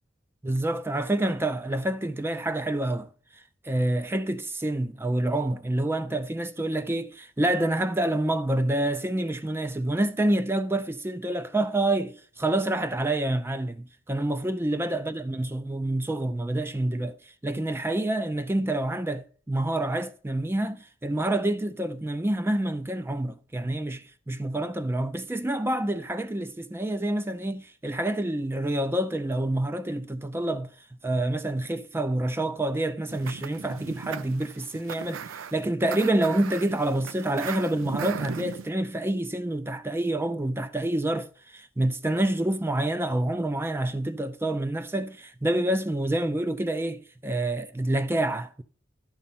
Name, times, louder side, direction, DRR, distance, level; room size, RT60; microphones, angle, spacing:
voice 1, 0.4-3.1 3.6-17.2 17.4-30.7 31.0-35.2 35.5-48.6, right 1 dB, 10° right, 0.4 m, -27 dB
sound 1, 33.1-38.7, right 6 dB, 80° right, 0.4 m, -38 dB
10.5 x 4.2 x 5.6 m
head